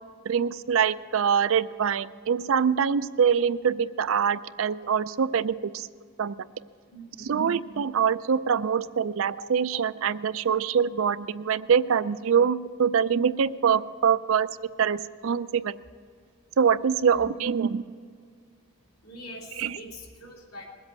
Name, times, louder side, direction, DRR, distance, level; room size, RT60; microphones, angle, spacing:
voice 1, 0.3-5.9 6.2-6.5 7.2-15.8 16.6-17.8 19.6-19.8, right 7 dB, 60° right, 15 dB, 0.4 m, -24 dB
voice 2, 6.9-7.4 9.4-9.5 17.1-17.3 19.0-20.7, left 1 dB, 75° left, -2 dB, 3.0 m, -43 dB
20.5 x 8.2 x 8.1 m, 2.1 s
head